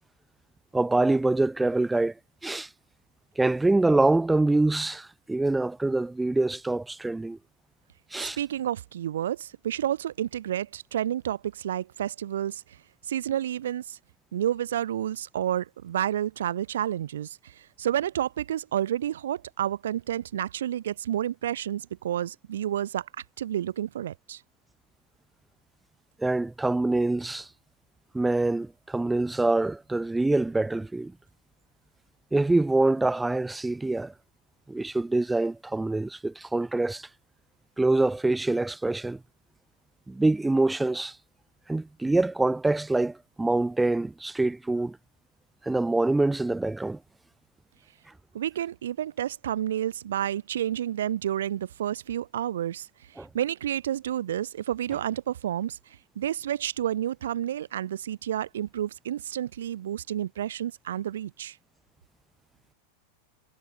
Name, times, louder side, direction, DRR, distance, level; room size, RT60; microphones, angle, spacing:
voice 1, 0.7-2.1 2.4-2.7 3.4-7.4 8.1-8.4 26.2-27.5 28.1-31.1 32.3-34.1 34.7-37.1 37.8-39.2 40.1-41.2 41.7-45.0 45.6-47.0 53.2-53.3, right 2 dB, 5° right, 4.1 m, -25 dB
voice 2, 8.2-12.8 13.0-14.0 14.3-23.1 23.4-24.4 48.3-52.9 53.2-55.8 56.2-61.6, right 11 dB, 60° right, 2.8 m, -30 dB
figure-of-eight pair, 90°, 0 cm